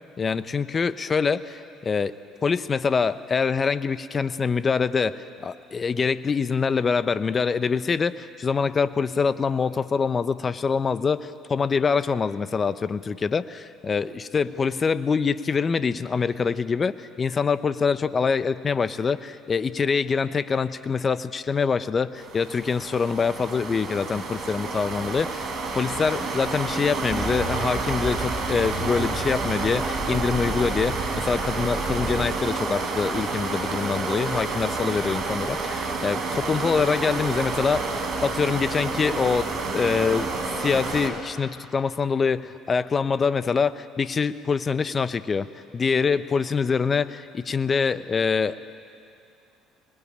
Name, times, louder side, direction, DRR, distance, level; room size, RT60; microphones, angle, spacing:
voice 1, 0.2-2.1 2.4-25.5 25.7-40.3 40.6-45.5 45.7-48.7, left 5 dB, 35° left, 14 dB, 1.0 m, -25 dB
sound 1, 22.2-41.1, right 3 dB, 55° right, 4.3 m, -29 dB
sound 2, 27.1-32.3, right 3 dB, 20° right, 7.1 m, -33 dB
25.5 x 21.0 x 8.8 m, 2.5 s
hypercardioid pair, 60°, 0 cm